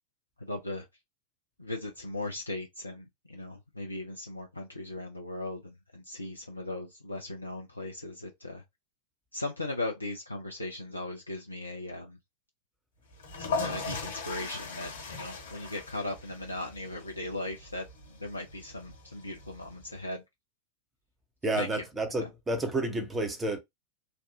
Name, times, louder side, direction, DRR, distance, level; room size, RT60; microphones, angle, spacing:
voice 1, 0.4-0.9 1.6-8.6 9.3-12.2 13.4-17.8 18.2-20.2 21.6-21.8 22.2-22.3, left 2 dB, 85° left, 0.5 m, -38 dB
sound 1, 13.1-20.0, left 4 dB, 65° left, 1.3 m, -39 dB
voice 2, 21.4-23.6, right 2 dB, 15° right, 0.9 m, -30 dB
3.3 x 2.3 x 2.7 m
figure-of-eight pair, 90°, 0 cm